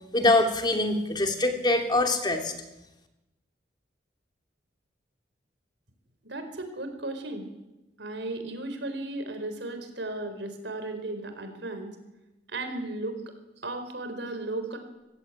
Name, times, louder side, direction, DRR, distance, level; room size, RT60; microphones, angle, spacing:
voice 1, 0.1-2.5, left 2 dB, 25° left, 5 dB, 2.9 m, -24 dB
voice 2, 6.2-7.5 8.0-12.0 12.5-13.2 13.6-14.8, right 2 dB, 70° right, 8 dB, 4.4 m, -35 dB
24.5 x 16.5 x 9.4 m, 0.99 s
head